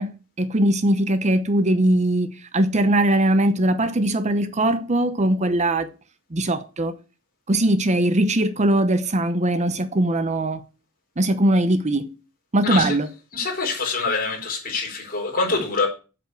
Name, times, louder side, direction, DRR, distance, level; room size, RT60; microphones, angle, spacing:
voice 1, 0.0-5.9 6.3-6.9 7.5-10.6 11.2-12.1 12.5-13.1, right 1 dB, 35° right, 0.8 m, -20 dB
voice 2, 12.6-13.0 13.3-15.9, left 4 dB, 45° left, 4.3 m, -25 dB
8.1 x 7.1 x 8.1 m
head